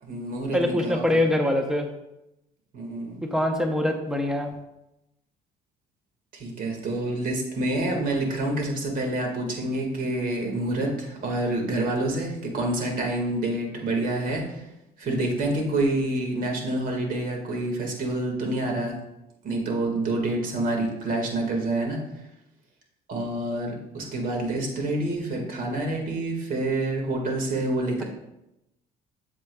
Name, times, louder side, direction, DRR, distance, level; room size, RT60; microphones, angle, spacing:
voice 1, 0.0-1.2 2.7-3.2 6.3-14.6 15.0-19.0 19.4-22.0 23.1-28.0, right 2 dB, 55° right, 2 dB, 1.9 m, -27 dB
voice 2, 0.5-1.9 3.2-4.6, left 1 dB, 5° right, 4 dB, 0.8 m, -24 dB
8.0 x 7.2 x 2.3 m, 0.88 s
cardioid pair, 110°, 17 cm